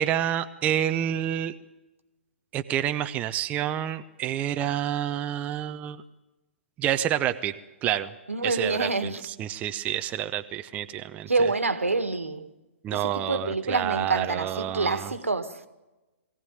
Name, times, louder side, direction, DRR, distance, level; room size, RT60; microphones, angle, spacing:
voice 1, 0.0-1.5 2.5-6.0 6.8-7.5 7.8-8.1 8.4-11.3 12.8-15.1, right 11 dB, 20° right, 0.8 m, -28 dB
voice 2, 8.3-9.2 11.3-12.5 12.9-15.7, right 3 dB, 80° right, 1.8 m, -27 dB
22.0 x 16.5 x 9.2 m
figure-of-eight pair, 120°, 7 cm